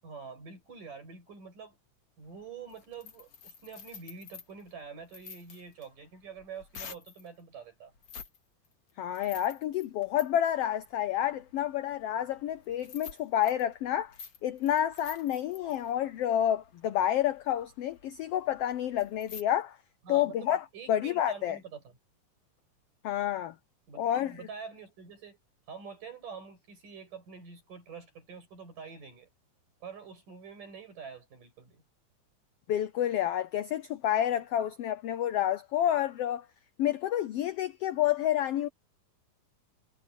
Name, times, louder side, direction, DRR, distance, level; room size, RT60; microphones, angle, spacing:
voice 1, 0.0-1.8 2.2-7.9 20.0-20.5 20.7-21.9 23.9-25.4 25.7-29.3 29.8-31.8, right 5 dB, 80° right, 8.8 m, -46 dB
sound 1, 2.2-7.3 8.0-8.4 8.7-19.4, left 7 dB, 50° left, 3.3 m, -50 dB
voice 2, 9.0-14.2 14.4-19.8 20.1-21.6 23.0-23.5 24.0-24.4 32.7-36.5 36.8-38.7, left 11 dB, 90° left, 1.3 m, -29 dB
omnidirectional pair, 3.7 m